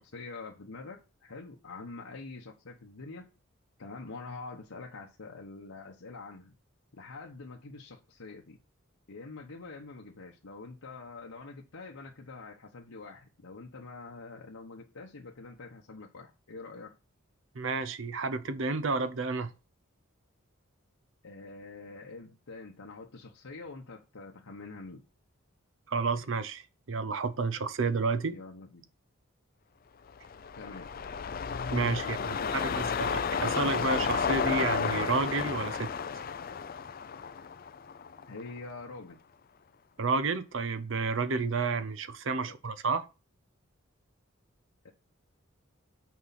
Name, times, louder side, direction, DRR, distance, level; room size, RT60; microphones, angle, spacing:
voice 1, 0.0-3.3 3.8-6.5 6.9-8.6 9.1-16.9 21.2-25.0 28.3-28.9 30.5-30.9 32.1-32.8 38.3-39.2 42.3-42.6 44.8-44.9, left 3 dB, 90° left, 1.0 m, -45 dB
voice 2, 17.5-19.5 25.9-26.6 26.9-28.4 31.7-35.9 40.0-43.1, right 4 dB, 65° right, 0.7 m, -30 dB
sound 1, 30.1-38.6 38.9-39.0, left 6 dB, 45° left, 0.4 m, -32 dB
6.2 x 4.7 x 5.6 m
head